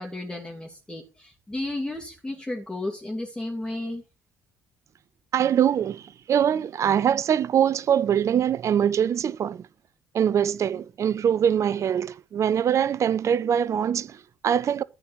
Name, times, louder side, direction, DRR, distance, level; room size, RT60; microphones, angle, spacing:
voice 1, 0.0-4.0, left 2 dB, 10° left, 2.7 m, -33 dB
voice 2, 5.3-9.7 10.1-14.8, right 9 dB, 45° right, 0.5 m, -23 dB
13.0 x 4.7 x 6.4 m
figure-of-eight pair, 45°, 7 cm